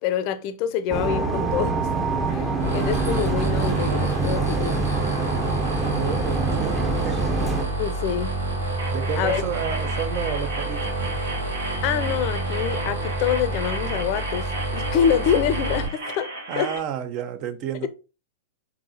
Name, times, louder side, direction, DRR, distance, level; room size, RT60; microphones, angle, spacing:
voice 1, 0.0-1.8 2.3-4.9 7.8-8.4 9.2-9.5 11.8-16.7, left 9 dB, 45° left, 0.5 m, -26 dB
sound 1, 0.9-7.6, right 4 dB, 15° right, 0.7 m, -25 dB
sound 2, 2.6-15.8, right 2 dB, 90° right, 1.6 m, -28 dB
voice 2, 5.9-7.3 8.9-10.9 16.5-17.9, right 9 dB, 45° right, 0.6 m, -30 dB
sound 3, 8.8-16.8, right 2 dB, 70° right, 1.5 m, -35 dB
4.6 x 2.8 x 2.7 m
hypercardioid pair, 105°, 0 cm